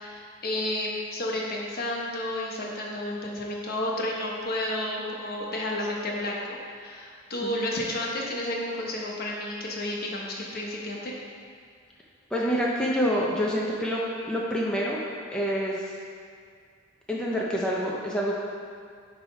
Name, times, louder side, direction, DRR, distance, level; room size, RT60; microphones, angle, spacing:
voice 1, 0.0-11.2, left 1 dB, 50° left, -3 dB, 1.1 m, -31 dB
voice 2, 7.4-7.8 12.3-14.0 14.3-15.0 15.3-15.8 17.1-18.4, equal, 5° left, -5 dB, 0.6 m, -27 dB
9.3 x 3.4 x 5.1 m, 2.2 s
head